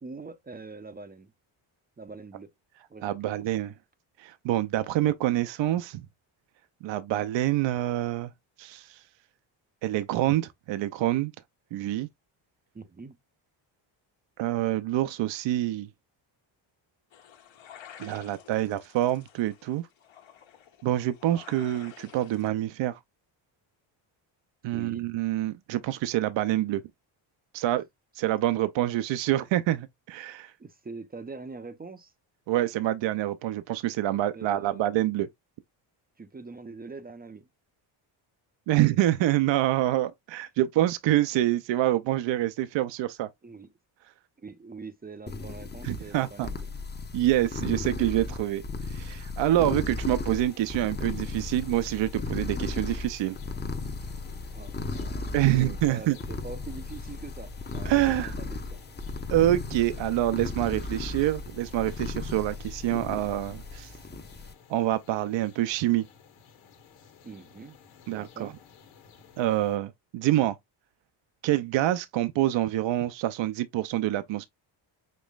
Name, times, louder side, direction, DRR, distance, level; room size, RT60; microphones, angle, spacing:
voice 1, 0.0-1.3 2.0-2.5 2.9-3.3 12.7-13.2 24.7-25.1 30.6-32.1 34.3-34.9 36.2-37.5 43.4-43.7 44.4-46.7 54.5-58.8 67.2-67.8 68.1-68.6, right 4 dB, 20° right, 0.6 m, -43 dB
voice 2, 3.0-3.7 4.2-6.1 6.8-8.3 8.6-9.0 9.8-11.3 11.7-12.1 14.4-15.9 18.0-19.9 20.8-23.0 24.6-26.8 27.5-27.8 28.1-30.5 32.5-35.3 38.7-43.3 45.8-46.5 47.1-53.4 55.3-56.2 57.9-58.3 59.3-63.9 64.7-66.1 68.1-68.5 69.4-70.6 71.4-74.5, right 14 dB, 65° right, 0.6 m, -26 dB
sound 1, 17.1-22.5, left 9 dB, 65° left, 1.4 m, -51 dB
sound 2, 45.3-64.5, left 3 dB, 20° left, 0.8 m, -36 dB
sound 3, 49.9-69.8, left 5 dB, 85° left, 1.5 m, -53 dB
5.3 x 3.0 x 2.3 m
cardioid pair, 85°, 49 cm